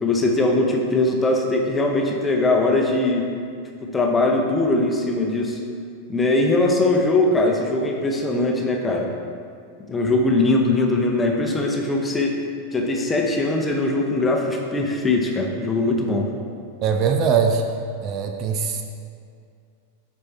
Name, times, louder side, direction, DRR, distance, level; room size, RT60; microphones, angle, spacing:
voice 1, 0.0-3.3 3.8-5.6 6.1-9.1 9.9-12.4 12.7-16.3, left 2 dB, 15° left, 1 dB, 0.8 m, -21 dB
voice 2, 16.8-17.6 18.0-18.8, right 6 dB, 35° right, 5 dB, 0.4 m, -21 dB
6.6 x 4.5 x 4.2 m, 2.3 s
figure-of-eight pair, 90°, 0 cm